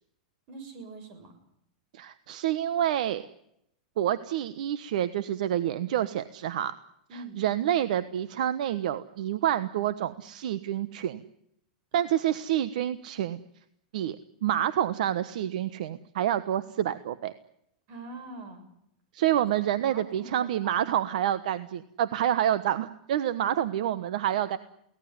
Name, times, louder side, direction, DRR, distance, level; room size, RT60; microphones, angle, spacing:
voice 1, 0.5-1.3 7.1-7.5 17.9-18.6 19.8-21.0 23.4-23.7, right 3 dB, 40° right, 7 dB, 7.0 m, -44 dB
voice 2, 1.9-3.2 4.0-6.8 7.1-11.2 11.9-13.4 13.9-17.3 19.1-24.6, right 11 dB, 70° right, 13 dB, 1.2 m, -28 dB
24.0 x 18.0 x 9.6 m, 0.76 s
supercardioid pair, 155°, 4 cm